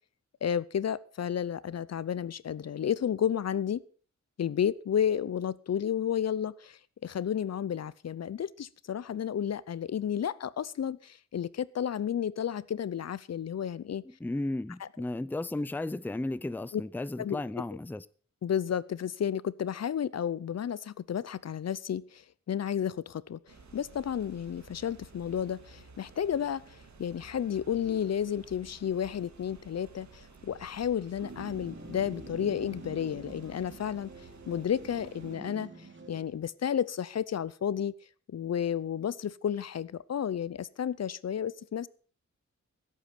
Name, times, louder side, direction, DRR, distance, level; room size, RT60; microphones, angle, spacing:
voice 1, 0.4-3.8 4.4-14.0 14.8-14.9 16.7-16.8 17.2-17.4 18.4-34.1 34.5-35.7 36.1-37.9 38.3-41.9, left 9 dB, 60° left, 0.7 m, -32 dB
voice 2, 14.2-18.0, left 2 dB, 5° left, 0.5 m, -34 dB
sound 1, 23.5-35.4, right 4 dB, 70° right, 2.9 m, -54 dB
sound 2, 31.2-36.5, right 3 dB, 40° right, 2.9 m, -46 dB
16.5 x 8.5 x 6.0 m
wide cardioid pair, 105°, 29 cm